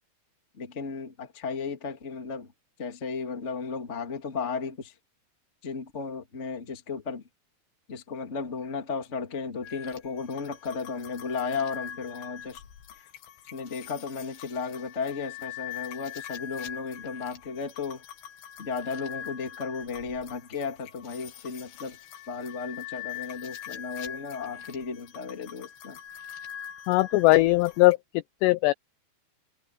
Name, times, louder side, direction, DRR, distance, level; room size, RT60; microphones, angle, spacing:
voice 1, 0.5-2.5 2.8-4.9 5.6-7.2 7.9-12.6 13.5-18.0 18.6-22.0 22.3-26.0, left 5 dB, 35° left, 1.0 m, -34 dB
sound 1, 9.6-27.9, left 10 dB, 65° left, 3.6 m, -43 dB
voice 2, 26.9-28.0 28.4-28.7, left 20 dB, 85° left, 2.4 m, -19 dB
omnidirectional pair, 5.5 m